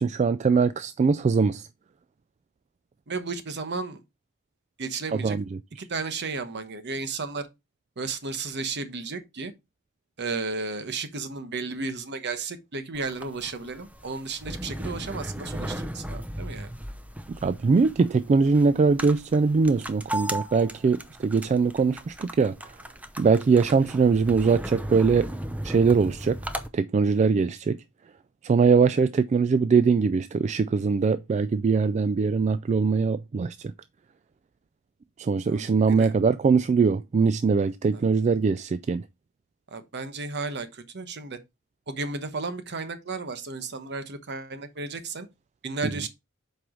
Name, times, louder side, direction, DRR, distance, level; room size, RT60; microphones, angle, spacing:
voice 1, 0.0-1.7 5.1-5.6 17.3-22.8 23.2-25.3 25.6-26.4 26.7-27.8 28.4-33.7 35.2-39.1, right 5 dB, 35° right, 0.3 m, -22 dB
voice 2, 3.1-4.0 4.8-5.4 5.8-7.5 8.0-9.5 10.2-16.7 35.5-36.1 37.9-38.0 39.7-41.4 41.9-45.3 45.6-46.1, right 4 dB, 55° right, 1.0 m, -33 dB
sound 1, 12.9-26.7, right 1 dB, 5° right, 0.7 m, -36 dB
7.7 x 4.7 x 3.7 m
head